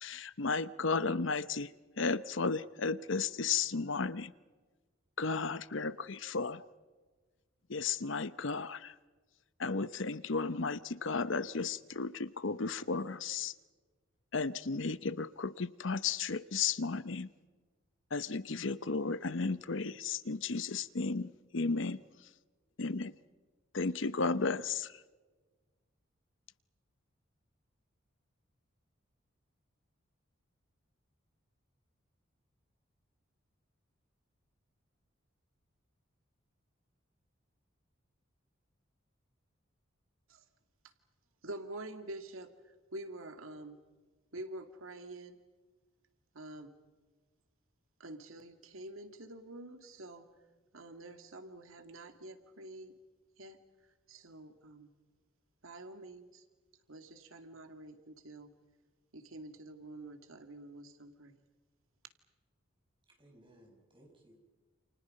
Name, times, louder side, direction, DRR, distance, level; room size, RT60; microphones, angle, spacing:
voice 1, 0.0-1.7 2.0-4.3 5.2-6.6 7.7-8.9 9.6-13.5 14.3-17.3 18.1-22.0 22.8-23.1 23.7-25.0, left 4 dB, 65° left, 15 dB, 0.8 m, -34 dB
voice 2, 41.4-42.5 42.9-43.8 44.3-45.4 46.3-46.7 48.0-50.3 50.7-52.9 53.4-53.6 54.1-54.9 55.6-56.4 56.9-58.5 59.1-61.4, right 1 dB, 85° right, 7 dB, 2.3 m, -47 dB
voice 3, 63.1-64.4, right 1 dB, 25° right, 2 dB, 6.0 m, -61 dB
29.0 x 29.0 x 5.4 m, 1.3 s
head